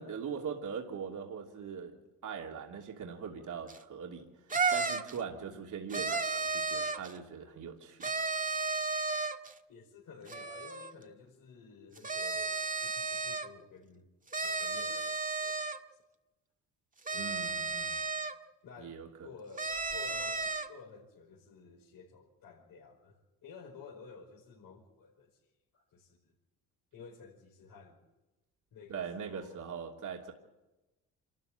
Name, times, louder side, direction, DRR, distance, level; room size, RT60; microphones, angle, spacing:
voice 1, 0.0-2.0 2.2-4.3 4.7-8.1 17.1-18.0 18.8-19.3 28.9-30.3, right 6 dB, 55° right, 3.0 m, -41 dB
sound 1, 3.7-3.8 4.5-5.2 5.9-7.1 8.0-9.5 10.3-10.9 12.0-13.5 14.3-15.8 17.1-18.3 19.6-20.7, right 4 dB, 20° right, 1.7 m, -33 dB
voice 2, 5.1-5.7 9.7-14.1 14.4-15.6 15.9-16.0 17.1-17.7 18.6-23.1 23.4-25.4 25.7-26.3 26.9-28.0 28.7-29.6, left 5 dB, 65° left, 5.3 m, -53 dB
27.0 x 13.5 x 9.0 m
supercardioid pair, 75°, 36 cm